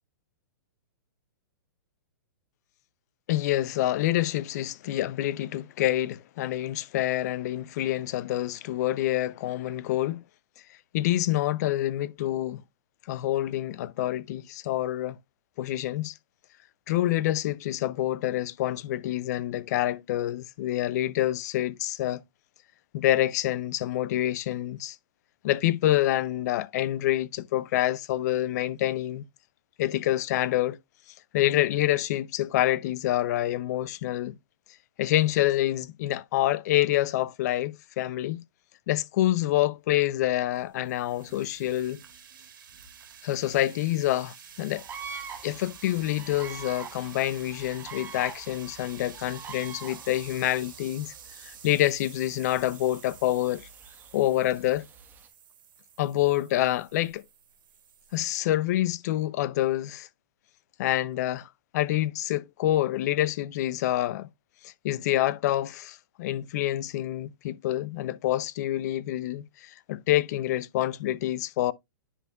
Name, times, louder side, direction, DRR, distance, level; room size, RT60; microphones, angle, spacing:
voice 1, 3.3-10.2 10.9-12.6 13.1-15.1 15.6-16.1 16.9-22.2 22.9-25.0 25.4-29.2 29.8-30.8 31.3-34.3 35.0-38.4 38.9-42.0 43.2-44.8 45.4-51.1 51.4-53.7 54.1-54.8 56.0-57.2 58.1-60.1 60.8-64.3 64.6-71.7, left 14 dB, 50° left, 0.5 m, -27 dB
sound 1, 40.2-58.4, right 8 dB, 70° right, 2.5 m, -50 dB
sound 2, 44.8-55.3, right 6 dB, 20° right, 1.4 m, -45 dB
10.0 x 5.3 x 2.3 m
hypercardioid pair, 135°, 11 cm